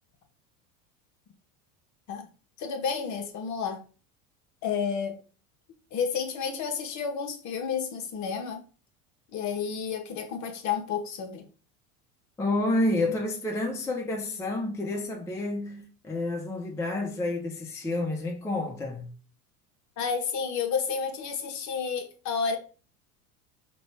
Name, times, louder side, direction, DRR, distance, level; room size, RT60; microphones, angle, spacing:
voice 1, 2.6-3.8 4.6-5.2 5.9-8.6 9.3-11.4 20.0-22.6, left 6 dB, 40° left, 0.8 m, -31 dB
voice 2, 12.4-19.1, left 2 dB, 5° left, 0.5 m, -29 dB
4.9 x 2.3 x 3.1 m
hypercardioid pair, 80°, 46 cm